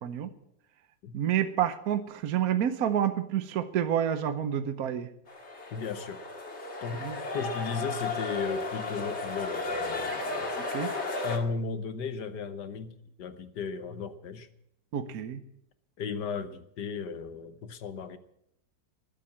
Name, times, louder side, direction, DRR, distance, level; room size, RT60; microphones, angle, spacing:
voice 1, 1.1-5.1 7.0-7.2 10.7-10.9 14.9-15.4, right 9 dB, 60° right, 10 dB, 1.2 m, -28 dB
sound 1, 5.3-11.4, left 3 dB, 40° left, 2.3 m, -34 dB
voice 2, 5.7-6.2 6.8-10.6 11.2-14.5 16.0-18.2, left 5 dB, 70° left, 10 dB, 1.5 m, -35 dB
20.0 x 7.7 x 7.3 m, 0.77 s
omnidirectional pair, 1.9 m